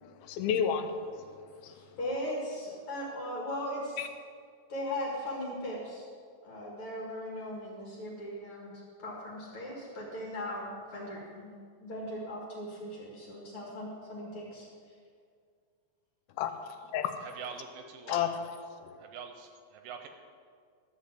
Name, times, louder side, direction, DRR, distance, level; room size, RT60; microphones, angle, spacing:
voice 1, 0.0-1.7 4.0-4.1 16.4-17.2 18.1-18.4, left 8 dB, 90° left, 8 dB, 2.6 m, -32 dB
voice 2, 1.7-4.0 4.7-6.1 6.4-8.7 9.0-11.5 11.8-14.7, left 1 dB, 45° left, -4 dB, 2.3 m, -38 dB
voice 3, 17.2-18.4 19.0-20.1, right 6 dB, 75° right, 6 dB, 2.2 m, -44 dB
12.5 x 5.7 x 7.8 m, 2.1 s
omnidirectional pair, 4.2 m